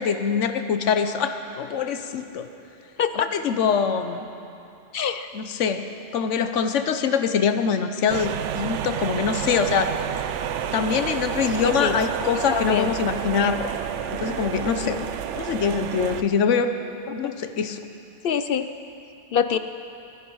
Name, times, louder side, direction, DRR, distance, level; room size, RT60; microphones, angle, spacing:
voice 1, 0.0-2.5 3.1-4.3 5.3-5.9 6.1-9.9 10.7-13.6 14.1-15.0 15.4-16.7 17.1-17.8, left 6 dB, 80° left, 8 dB, 1.1 m, -24 dB
voice 2, 4.9-5.3 11.6-12.0 12.5-12.9 14.7-15.1 17.2-17.3 18.2-18.7 19.3-19.6, left 8 dB, 60° left, 10 dB, 0.6 m, -25 dB
sound 1, 8.1-16.2, right 9 dB, 80° right, 0.9 m, -30 dB
16.5 x 13.5 x 5.5 m, 2.8 s
omnidirectional pair, 1.2 m